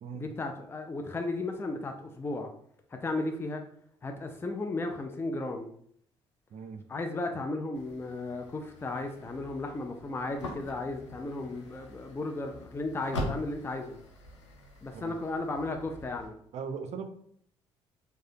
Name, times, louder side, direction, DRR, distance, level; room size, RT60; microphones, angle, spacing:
voice 1, 0.1-2.5 2.9-3.6 4.0-5.7 6.9-13.9 14.8-16.4, left 2 dB, 15° left, 4 dB, 0.5 m, -35 dB
voice 2, 6.5-6.8 14.9-15.1 16.5-17.1, right 6 dB, 50° right, 7 dB, 0.5 m, -39 dB
sound 1, 7.7-16.3, left 1 dB, 85° left, 0.5 m, -43 dB
4.8 x 2.2 x 2.7 m, 0.65 s
figure-of-eight pair, 45°, 15 cm